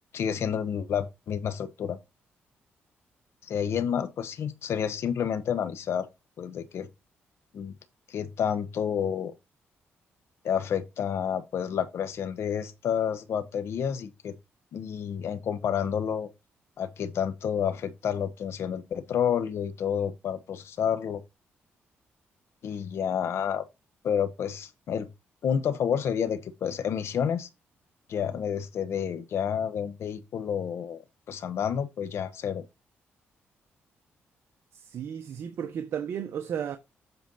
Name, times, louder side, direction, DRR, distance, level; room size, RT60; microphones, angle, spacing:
voice 1, 0.1-2.0 3.4-6.1 6.4-6.9 7.5-7.7 8.1-9.3 10.4-14.3 14.7-16.3 16.8-21.2 22.6-23.6 24.0-25.1 25.4-27.5 28.1-31.0 31.3-32.6, left 8 dB, 70° left, 1.1 m, -29 dB
voice 2, 34.7-36.8, right 8 dB, 70° right, 0.9 m, -34 dB
8.1 x 4.4 x 4.0 m
cardioid pair, 80°, 5 cm